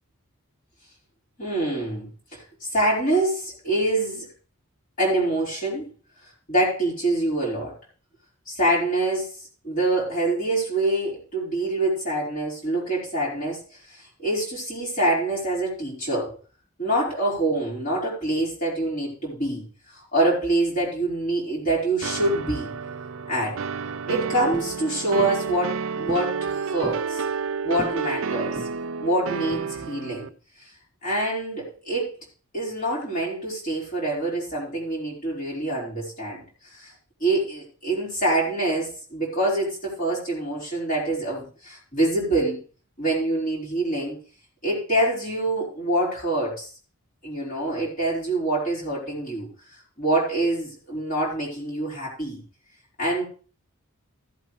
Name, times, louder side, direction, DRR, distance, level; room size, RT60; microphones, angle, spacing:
voice 1, 1.4-4.3 5.0-5.9 6.5-7.8 8.5-16.4 16.8-19.6 19.9-22.7 23.3-23.6 24.1-27.2 27.6-28.7 29.0-30.3 30.6-30.7 31.0-32.1 32.5-36.9 37.2-42.6 43.0-44.2 44.6-46.7 47.2-52.4 53.0-53.2, right 1 dB, 35° left, -6 dB, 4.5 m, -25 dB
sound 1, 22.0-30.3, right 5 dB, 60° right, 0.4 m, -30 dB
sound 2, 24.5-24.8 25.2-25.5 26.1-26.3 26.6-27.1 27.8-28.1 28.6-28.9 29.5-30.0, right 1 dB, 20° right, 0.9 m, -38 dB
15.0 x 7.9 x 3.2 m, 0.38 s
head